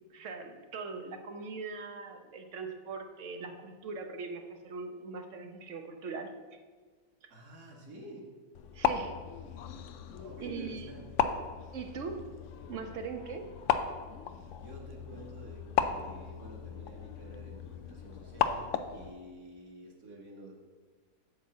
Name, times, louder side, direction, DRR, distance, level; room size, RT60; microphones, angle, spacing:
voice 1, 0.1-6.3 8.7-9.2 10.4-10.9 11.7-12.3 12.7-13.4, right 4 dB, 55° right, 5 dB, 1.1 m, -40 dB
voice 2, 7.3-8.3 10.2-11.3 14.6-20.5, right 1 dB, 75° right, -2 dB, 2.2 m, -50 dB
sound 1, 8.5-19.1, left 8 dB, 70° left, 0.8 m, -35 dB
8.4 x 4.4 x 7.2 m, 1.4 s
omnidirectional pair, 1.7 m